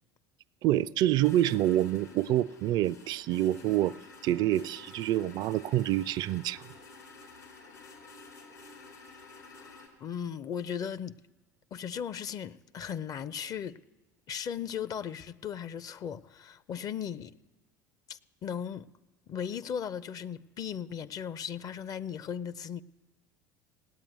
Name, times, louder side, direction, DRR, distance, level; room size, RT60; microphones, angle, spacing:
voice 1, 0.6-4.0 4.2-6.6, right 13 dB, 50° right, 0.4 m, -27 dB
sound 1, 1.2-9.9, left 3 dB, 85° left, 3.6 m, -51 dB
voice 2, 10.0-11.2 11.7-13.8 14.3-17.3 18.1-18.9 19.3-22.8, left 8 dB, 40° left, 0.6 m, -37 dB
17.5 x 8.7 x 9.4 m
hypercardioid pair, 70°, 10 cm